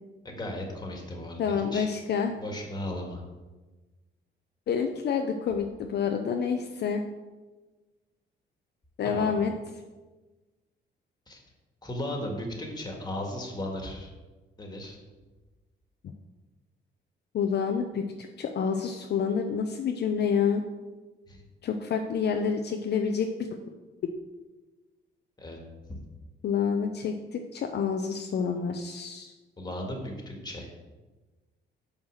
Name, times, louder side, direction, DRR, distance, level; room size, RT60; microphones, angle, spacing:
voice 1, 0.2-1.9 2.4-3.2 9.0-9.4 11.3-11.4 11.8-14.1 14.6-15.0 21.3-21.4 25.4-25.6 29.6-30.7, left 1 dB, 20° left, 1 dB, 1.8 m, -36 dB
voice 2, 1.4-2.3 4.7-7.0 9.0-9.5 17.3-20.6 21.6-23.3 26.4-29.3, left 6 dB, 60° left, 4 dB, 0.6 m, -28 dB
5.6 x 4.7 x 6.3 m, 1.2 s
cardioid pair, 90°, 20 cm